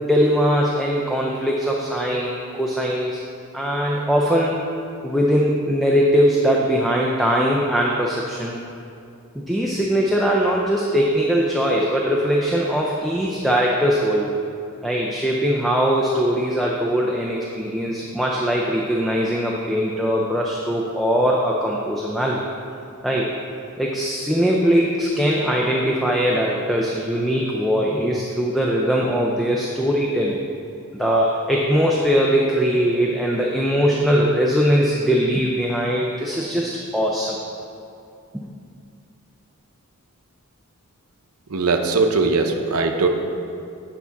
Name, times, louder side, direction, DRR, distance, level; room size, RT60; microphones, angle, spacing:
voice 1, 0.1-3.2 3.5-4.6 5.0-8.6 9.3-14.4 14.8-22.4 23.0-23.3 23.8-30.4 30.9-37.4 38.3-38.4, equal, ahead, -3 dB, 0.5 m, -21 dB
voice 2, 41.5-43.1, right 3 dB, 80° right, 4 dB, 0.7 m, -20 dB
8.6 x 5.7 x 4.0 m, 2.5 s
head